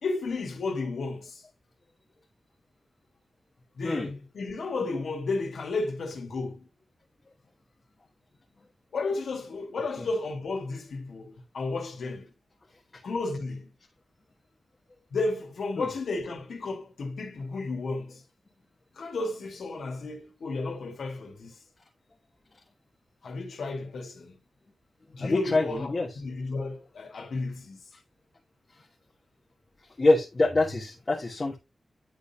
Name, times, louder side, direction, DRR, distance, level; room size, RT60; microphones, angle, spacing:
voice 1, 0.0-1.4 3.8-6.7 8.9-12.3 13.0-13.7 15.1-18.2 19.0-21.5 23.2-24.4 25.1-27.8, left 3 dB, 85° left, 2.0 m, -33 dB
voice 2, 25.2-26.1 30.0-31.6, left 2 dB, 35° left, 1.5 m, -25 dB
10.0 x 4.0 x 2.8 m
wide cardioid pair, 135°, 0 cm